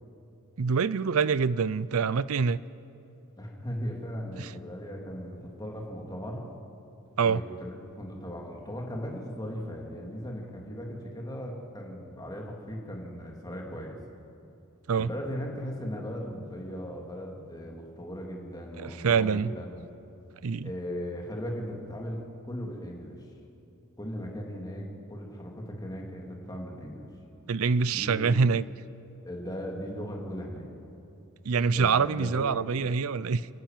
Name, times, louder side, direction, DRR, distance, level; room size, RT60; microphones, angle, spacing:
voice 1, 0.6-2.6 4.4-4.5 7.2-7.4 14.9-15.1 18.8-19.5 20.4-20.7 27.5-28.6 31.4-33.5, right 5 dB, 65° right, 18 dB, 0.5 m, -25 dB
voice 2, 3.4-6.4 7.2-14.0 14.9-19.8 20.6-22.2 22.4-23.2 24.0-27.1 27.8-28.3 29.2-30.7 31.7-32.6, equal, 15° left, 0 dB, 2.9 m, -38 dB
28.5 x 12.0 x 9.1 m, 2.7 s
head